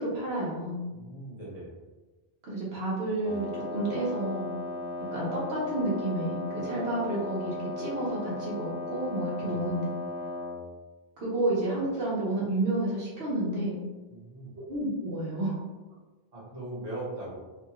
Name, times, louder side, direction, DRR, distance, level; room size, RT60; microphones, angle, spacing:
voice 1, 0.0-0.8 2.4-4.5 5.1-9.8 11.2-13.8 14.7-15.5, right 1 dB, 90° right, -6 dB, 1.2 m, -30 dB
voice 2, 0.9-1.7 9.4-9.6 14.1-14.5 16.3-17.4, right 2 dB, 40° right, -8 dB, 1.1 m, -39 dB
Wind instrument woodwind instrument, 3.2-10.7, left 2 dB, 90° left, 0.9 m, -36 dB
2.8 x 2.3 x 2.9 m, 1.2 s
omnidirectional pair, 1.0 m